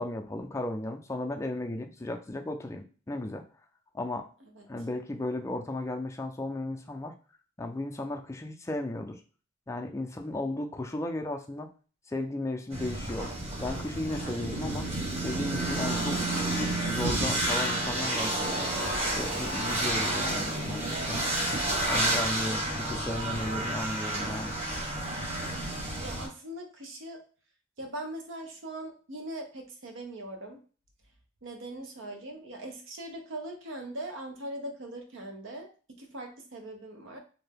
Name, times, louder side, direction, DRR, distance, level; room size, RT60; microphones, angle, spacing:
voice 1, 0.0-3.5 3.9-4.3 4.7-7.1 7.6-9.2 9.7-11.7 12.1-13.3 13.6-14.9 15.2-16.3 16.8-18.7 19.1-21.2 21.9-24.6, left 2 dB, 15° left, 4 dB, 0.3 m, -35 dB
sound 1, 12.7-26.3, right 1 dB, 35° right, 1.0 m, -30 dB
voice 2, 22.5-24.2 25.5-27.2 27.8-30.6 31.4-37.2, right 1 dB, 85° right, 4 dB, 0.7 m, -41 dB
2.6 x 2.2 x 3.3 m, 0.38 s
head